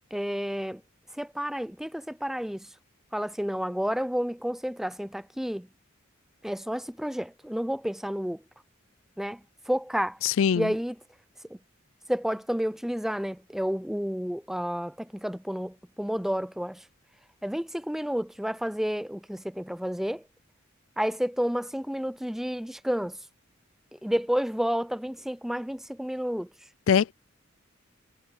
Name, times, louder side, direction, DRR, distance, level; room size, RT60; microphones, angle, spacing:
voice 1, 0.1-0.8 1.1-2.7 3.1-5.7 6.4-8.4 9.2-10.2 10.5-10.9 11.5-11.6 12.1-16.9 17.4-20.2 21.0-23.2 23.9-26.5, equal, ahead, 0.6 m, -30 dB
voice 2, 10.2-10.7 26.9-27.1, left 7 dB, 70° left, 0.4 m, -22 dB
head